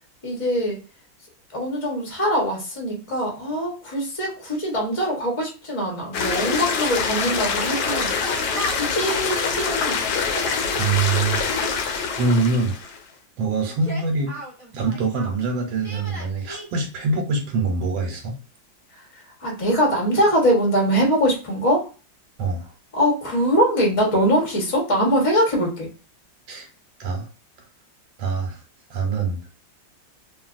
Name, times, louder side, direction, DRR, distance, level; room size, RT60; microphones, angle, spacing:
voice 1, 0.2-0.8 1.5-8.1 8.5-10.0 19.4-21.9 22.9-25.9, equal, 30° left, -1 dB, 0.7 m, -22 dB
sound 1, 6.1-13.0, left 5 dB, 70° left, 1.0 m, -25 dB
Yell, 7.5-9.0 10.1-11.1 13.7-15.4 15.8-16.6, right 1 dB, 20° right, 0.9 m, -36 dB
voice 2, 10.8-11.5 12.2-12.9 13.4-14.3 14.7-18.4 22.4-22.6 26.5-26.7 27.0-27.3 28.2-28.6 28.9-29.4, right 3 dB, 85° right, 2 dB, 1.4 m, -24 dB
2.9 x 2.5 x 2.4 m, 0.34 s
omnidirectional pair, 2.1 m